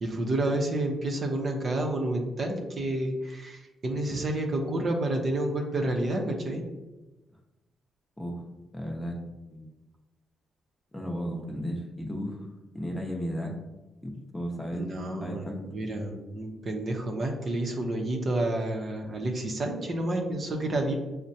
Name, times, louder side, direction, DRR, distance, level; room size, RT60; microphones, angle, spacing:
voice 1, 0.0-6.7 14.7-20.9, right 1 dB, 45° right, 2 dB, 0.6 m, -30 dB
voice 2, 8.7-9.2 9.5-9.6 10.9-12.4 12.7-13.5 14.0-14.9 15.2-15.6, equal, 10° left, 0 dB, 0.7 m, -34 dB
6.2 x 2.1 x 2.7 m, 1.1 s
cardioid pair, 95°, 0 cm